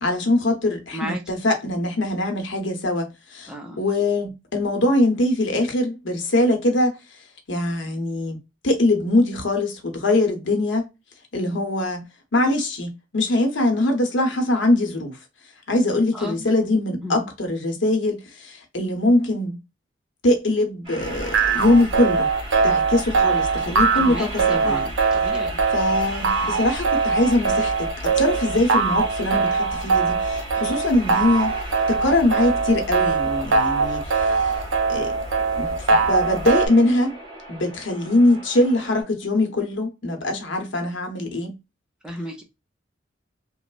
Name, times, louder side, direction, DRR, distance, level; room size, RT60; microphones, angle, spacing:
voice 1, 0.0-7.0 7.5-8.4 8.6-10.9 11.3-12.0 12.3-15.2 15.7-19.6 20.2-22.3 22.6-24.8 25.7-31.6 31.9-34.6 34.9-35.1 35.5-37.2 37.5-41.6, left 1 dB, 80° left, 0.8 m, -22 dB
voice 2, 3.5-3.8 16.1-16.5 17.0-17.3 23.9-25.6 42.0-42.4, equal, 5° right, 0.5 m, -34 dB
sound 1, 20.8-39.0, right 2 dB, 25° right, 1.6 m, -37 dB
sound 2, 21.0-36.7, right 4 dB, 85° right, 0.6 m, -22 dB
3.1 x 2.0 x 2.2 m
head